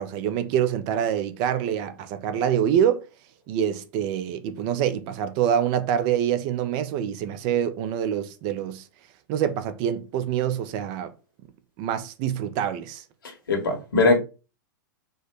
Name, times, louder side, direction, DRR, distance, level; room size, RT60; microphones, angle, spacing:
voice 1, 0.0-3.1 3.5-8.8 9.3-11.1 11.8-13.0, right 9 dB, 45° right, 0.6 m, -25 dB
voice 2, 13.2-14.2, left 3 dB, 85° left, 1.6 m, -21 dB
4.5 x 2.2 x 4.6 m
hypercardioid pair, 115°, 11 cm